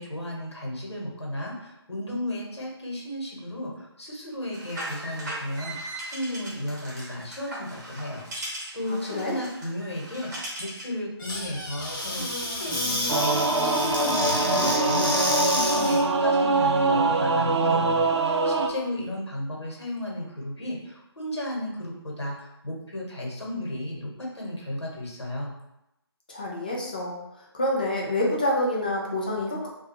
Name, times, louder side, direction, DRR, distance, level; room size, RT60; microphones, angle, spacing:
voice 1, 0.0-5.8 6.1-25.5, left 1 dB, 75° left, -3 dB, 1.2 m, -34 dB
sound 1, 4.5-10.9, right 1 dB, 40° right, 0.8 m, -38 dB
voice 2, 8.8-9.4 26.3-27.2 27.5-29.7, left 1 dB, 20° left, -3 dB, 0.3 m, -27 dB
Squeak / Cupboard open or close, 11.2-16.1, left 1 dB, 50° left, 0.9 m, -29 dB
Singing / Musical instrument, 13.1-18.7, right 3 dB, 80° right, 0.4 m, -23 dB
2.3 x 2.3 x 3.0 m, 0.86 s
figure-of-eight pair, 155°, 14 cm